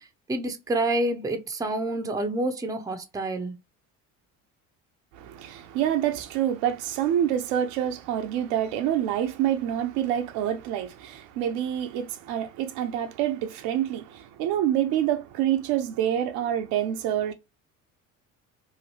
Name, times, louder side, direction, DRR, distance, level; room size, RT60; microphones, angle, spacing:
voice 1, 0.3-3.5, right 2 dB, 10° right, 0.5 m, -28 dB
voice 2, 5.2-17.3, right 11 dB, 70° right, 0.6 m, -27 dB
2.8 x 2.6 x 2.8 m
hypercardioid pair, 65°, 41 cm